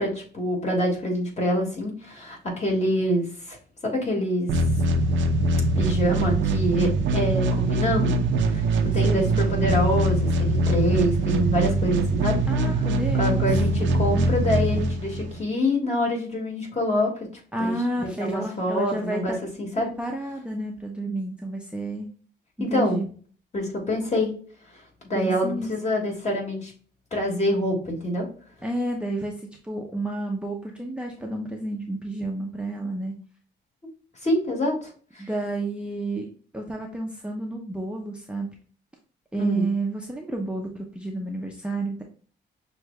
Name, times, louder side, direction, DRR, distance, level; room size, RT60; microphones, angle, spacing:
voice 1, 0.0-3.6 3.8-4.5 5.8-8.2 8.5-8.6 8.9-12.4 13.2-17.1 17.6-17.7 18.2-19.9 22.6-23.0 23.5-24.3 25.0-26.7 27.1-28.3 34.2-35.3 39.4-39.6, equal, 35° left, -1 dB, 2.0 m, -25 dB
sound 1, 4.5-15.4, right 2 dB, 70° right, 0.6 m, -23 dB
voice 2, 9.0-9.4 12.5-13.5 17.5-19.4 19.8-22.1 22.6-23.1 25.1-25.7 28.6-33.1 35.2-36.3 36.5-38.5 39.3-42.0, right 2 dB, 5° right, 0 dB, 0.7 m, -30 dB
6.2 x 2.6 x 2.2 m, 0.42 s
cardioid pair, 90°, 20 cm